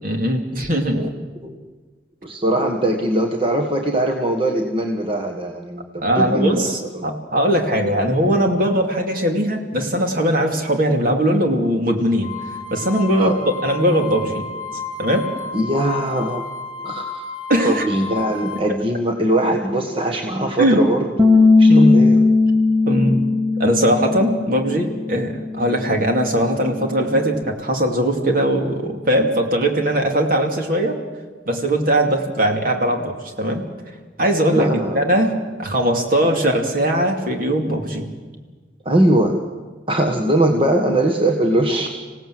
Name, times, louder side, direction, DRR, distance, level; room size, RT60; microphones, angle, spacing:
voice 1, 0.0-1.0 6.0-12.4 12.7-13.3 13.6-14.5 15.0-15.3 17.5-17.9 20.6-20.9 21.7-22.0 22.9-23.2 23.6-31.0 31.5-33.6 34.2-38.1, right 1 dB, 55° right, 3 dB, 2.6 m, -20 dB
voice 2, 2.2-7.1 13.2-13.4 15.5-16.4 16.8-17.3 17.6-22.2 34.5-35.0 35.9-36.0 36.2-36.3 38.8-39.4 39.9-41.9, right 1 dB, 30° right, 2 dB, 1.5 m, -21 dB
sound 1, 12.2-18.6, left 4 dB, 25° left, 2.3 m, -32 dB
Bass guitar, 21.2-27.4, left 3 dB, 15° right, 0.8 m, -18 dB
26.5 x 17.0 x 7.8 m, 1.4 s
head